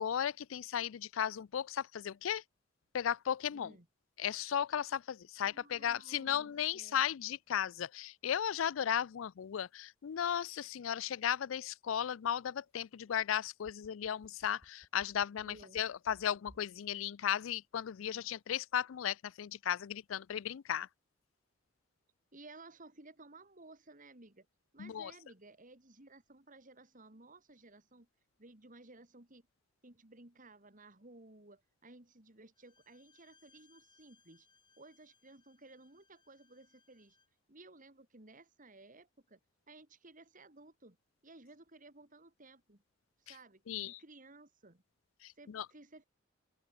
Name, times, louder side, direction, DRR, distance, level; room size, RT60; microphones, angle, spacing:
voice 1, 0.0-2.4 2.9-3.7 4.2-20.9 24.8-25.1 43.3-43.4 43.7-44.0 45.2-45.7, left 9 dB, 85° left, 0.4 m, -35 dB
voice 2, 3.5-3.9 5.4-7.0 15.4-15.8 22.3-24.5 24.7-28.1 28.4-29.5 29.8-34.5 34.8-37.2 37.5-39.4 39.7-41.0 41.2-42.8 43.2-44.8 45.4-46.0, right 2 dB, 40° right, 3.2 m, -57 dB
sound 1, 13.3-16.8 17.1-17.2, equal, 15° right, 3.5 m, -61 dB
Bowed string instrument, 32.5-37.4, left 5 dB, 25° left, 6.2 m, -70 dB
open air
head